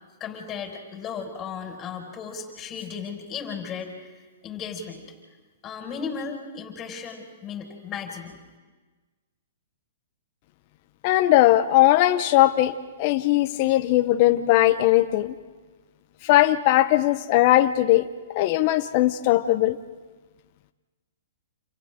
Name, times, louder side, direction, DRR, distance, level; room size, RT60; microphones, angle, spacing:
voice 1, 0.2-4.1 4.4-5.0 5.6-8.4, left 6 dB, 25° left, 2 dB, 5.4 m, -35 dB
voice 2, 11.0-15.3 16.2-18.1 18.3-19.8, left 15 dB, 45° left, 9 dB, 0.8 m, -19 dB
30.0 x 28.5 x 3.7 m, 1.3 s
hypercardioid pair, 130°, 0 cm